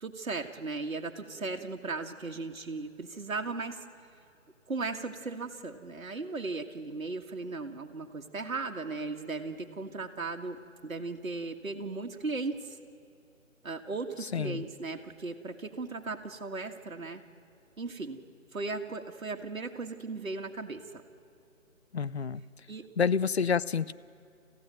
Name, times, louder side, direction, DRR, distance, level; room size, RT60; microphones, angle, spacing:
voice 1, 0.0-3.8 4.7-12.8 13.6-17.2 17.8-18.2 18.5-21.0 22.7-22.9, right 3 dB, 75° right, 3 dB, 1.8 m, -37 dB
voice 2, 14.3-14.6 21.9-22.4 23.0-23.9, left 6 dB, 50° left, 18 dB, 0.6 m, -28 dB
27.5 x 15.5 x 9.0 m, 2.5 s
figure-of-eight pair, 160°, 41 cm